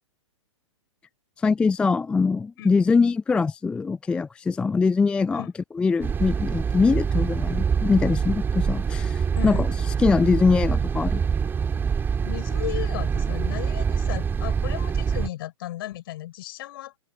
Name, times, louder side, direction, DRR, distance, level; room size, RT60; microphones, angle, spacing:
voice 1, 1.4-5.4 5.7-11.2, left 4 dB, 5° left, 0.4 m, -23 dB
sound 1, 6.0-15.3, right 6 dB, 15° right, 2.8 m, -25 dB
voice 2, 12.2-16.9, left 15 dB, 45° left, 6.5 m, -35 dB
figure-of-eight pair, 115°, 17 cm